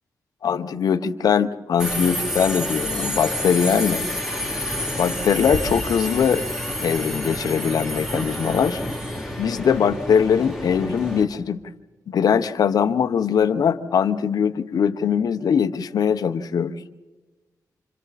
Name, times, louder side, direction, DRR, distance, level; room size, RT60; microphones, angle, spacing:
voice 1, 0.4-4.1 4.9-6.4 6.8-8.8 9.4-11.6 12.1-16.7, left 7 dB, 75° left, 9 dB, 1.0 m, -21 dB
Subway metro underground, 1.8-11.2, equal, 5° right, 2.7 m, -29 dB
28.5 x 27.0 x 4.2 m, 1.2 s
cardioid pair, 95°, 7 cm